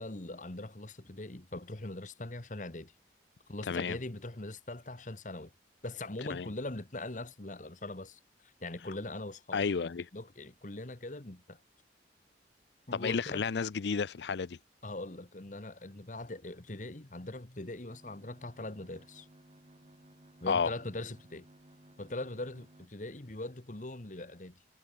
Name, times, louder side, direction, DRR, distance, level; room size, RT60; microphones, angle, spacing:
voice 1, 0.0-2.9 3.5-5.5 5.8-11.6 12.9-13.4 14.8-19.3 20.4-21.5 22.0-24.6, left 2 dB, 45° left, 1.5 m, -41 dB
voice 2, 3.7-4.0 6.3-6.5 9.5-10.1 12.9-14.6 20.5-20.7, left 5 dB, 75° left, 0.5 m, -31 dB
sound 1, 17.9-22.9, right 1 dB, 35° right, 2.0 m, -58 dB
head